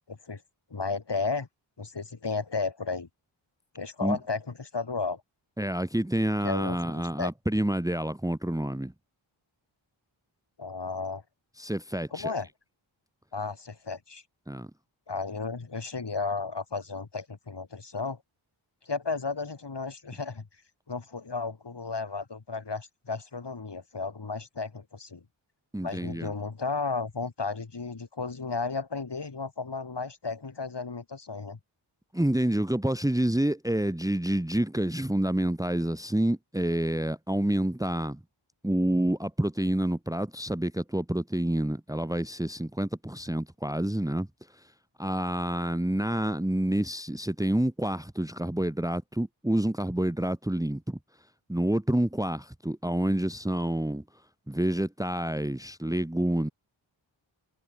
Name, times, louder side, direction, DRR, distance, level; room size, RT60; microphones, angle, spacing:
voice 1, 0.1-0.4 0.7-1.5 1.8-3.1 3.7-5.2 6.4-6.8 7.2-7.3 10.6-11.2 12.1-12.5 13.3-14.2 15.1-18.2 18.8-20.4 20.9-25.2 25.8-31.6, left 4 dB, 55° left, 7.0 m, -33 dB
voice 2, 5.6-8.9 11.6-12.3 14.5-14.7 25.7-26.3 32.1-38.2 38.6-44.3 44.5-44.6 45.0-51.0 51.5-54.0 54.5-56.5, right 1 dB, 5° right, 1.5 m, -28 dB
wide cardioid pair, 65°, 49 cm